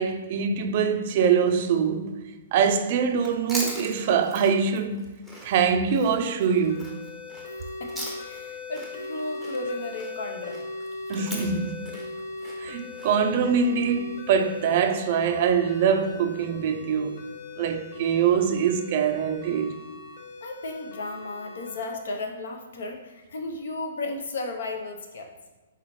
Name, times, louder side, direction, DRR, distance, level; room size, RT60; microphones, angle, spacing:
voice 1, 0.0-2.2 2.5-5.0 5.4-6.9 11.1-11.8 12.6-17.3 17.6-19.8, right 6 dB, 40° right, 0.3 m, -24 dB
Chewing mastication, 3.1-8.5 8.7-13.1, right 1 dB, 5° left, 0.7 m, -39 dB
sound 1, 6.4-22.0, left 3 dB, 40° left, 0.7 m, -39 dB
voice 2, 7.8-10.7 20.4-25.3, left 2 dB, 75° left, 0.8 m, -34 dB
4.1 x 4.0 x 3.1 m
hypercardioid pair, 160°, 0 cm